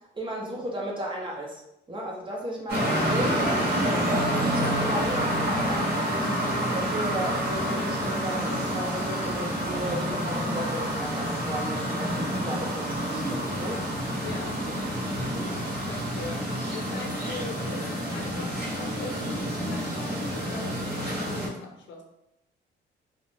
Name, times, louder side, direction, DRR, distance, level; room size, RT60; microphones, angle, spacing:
voice 1, 0.1-1.6 1.9-3.4 4.1-13.9, equal, 25° right, -2 dB, 0.6 m, -35 dB
sound 1, 2.7-21.5, equal, 50° right, 0.9 m, -28 dB
voice 2, 14.2-14.6 15.9-22.0, left 4 dB, 65° left, 2 dB, 0.6 m, -41 dB
2.4 x 2.0 x 3.2 m, 0.82 s
cardioid pair, 90°, 20 cm